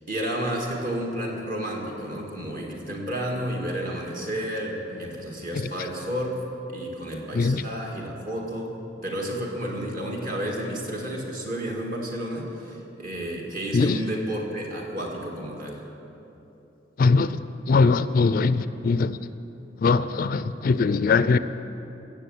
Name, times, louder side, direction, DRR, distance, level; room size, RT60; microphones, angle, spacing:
voice 1, 0.1-6.4 6.7-8.7 9.0-15.8, right 1 dB, 45° right, -1 dB, 2.0 m, -31 dB
voice 2, 17.0-17.4 17.7-19.2 19.8-21.4, left 4 dB, 50° left, 14 dB, 0.3 m, -21 dB
15.0 x 7.5 x 7.9 m, 3.0 s
head